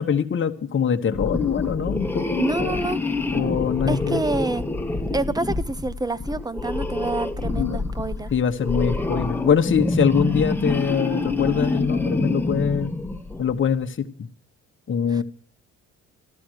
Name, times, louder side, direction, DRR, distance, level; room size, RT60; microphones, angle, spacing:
voice 1, 0.0-2.8 3.3-4.2 7.6-7.8 8.3-13.0 13.4-14.3 14.9-15.2, left 7 dB, 40° left, 1.2 m, -23 dB
sound 1, 1.1-13.6, left 2 dB, 5° left, 1.5 m, -26 dB
voice 2, 2.4-3.0 3.9-4.6 5.1-8.3 15.1-15.2, right 3 dB, 15° right, 0.9 m, -27 dB
13.0 x 13.0 x 6.3 m
cardioid pair, 85°, 30 cm